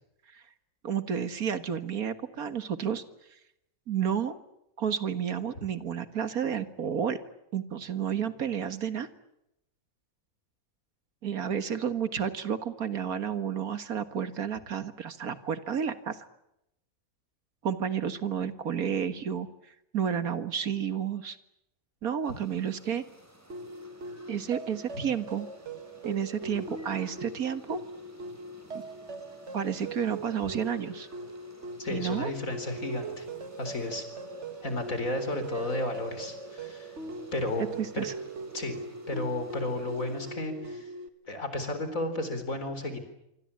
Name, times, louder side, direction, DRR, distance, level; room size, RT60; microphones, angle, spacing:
voice 1, 0.8-3.0 3.9-4.4 4.8-7.2 7.5-9.1 11.2-16.2 17.6-19.5 19.9-21.4 22.0-23.0 24.3-25.5 26.0-27.8 29.5-31.1 31.9-32.3 37.8-38.1, right 8 dB, 85° right, 11 dB, 2.1 m, -31 dB
sound 1, 22.2-40.3, right 1 dB, 10° right, 5.6 m, -57 dB
sound 2, 23.5-41.1, right 2 dB, 55° right, 1.7 m, -41 dB
voice 2, 31.8-33.3 33.6-34.0 34.6-36.9 37.3-38.1 38.5-38.8 39.1-40.9 41.3-43.0, left 2 dB, 70° left, 9 dB, 4.5 m, -33 dB
26.0 x 25.5 x 8.7 m, 0.83 s
omnidirectional pair, 1.5 m